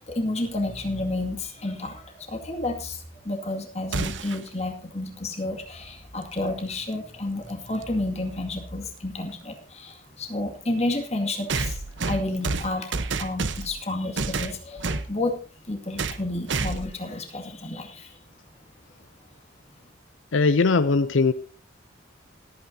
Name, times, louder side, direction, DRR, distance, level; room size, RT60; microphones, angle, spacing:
voice 1, 0.0-18.2, left 2 dB, 30° left, 3 dB, 2.2 m, -31 dB
sound 1, 3.9-4.5 6.6-6.7 7.8-7.9 11.5-13.8 14.2-15.1 16.0-16.2 16.5-17.0, right 3 dB, 65° right, 1.0 m, -29 dB
voice 2, 20.3-21.3, left 4 dB, 70° left, 14 dB, 0.6 m, -20 dB
27.0 x 9.0 x 2.8 m, 0.36 s
head